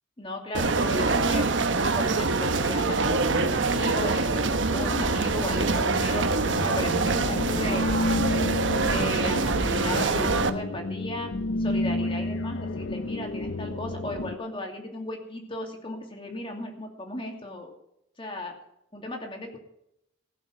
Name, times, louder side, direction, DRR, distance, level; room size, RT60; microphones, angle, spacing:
voice 1, 0.2-1.5 2.0-6.3 6.6-7.8 8.8-11.3 11.6-17.8 18.2-18.5 18.9-19.6, left 1 dB, 25° left, 2 dB, 2.5 m, -36 dB
sound 1, 0.5-10.5, right 3 dB, 75° right, 1.1 m, -25 dB
sound 2, 5.9-14.4, left 2 dB, 75° left, 0.7 m, -31 dB
16.0 x 7.3 x 7.6 m, 0.80 s
head